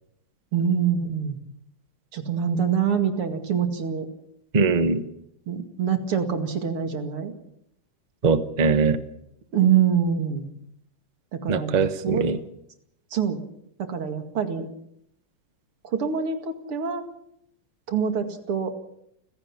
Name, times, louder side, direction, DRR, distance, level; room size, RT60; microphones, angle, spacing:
voice 1, 0.5-1.4 2.1-4.1 5.5-7.3 9.5-10.5 11.3-12.3 13.1-13.4 13.8-14.7 15.8-17.0 17.9-18.7, right 7 dB, 85° right, 6 dB, 3.1 m, -25 dB
voice 2, 4.5-5.0 8.2-9.0 11.5-12.4, right 4 dB, 30° right, 10 dB, 0.9 m, -21 dB
29.5 x 16.0 x 6.0 m, 0.77 s
omnidirectional pair, 2.4 m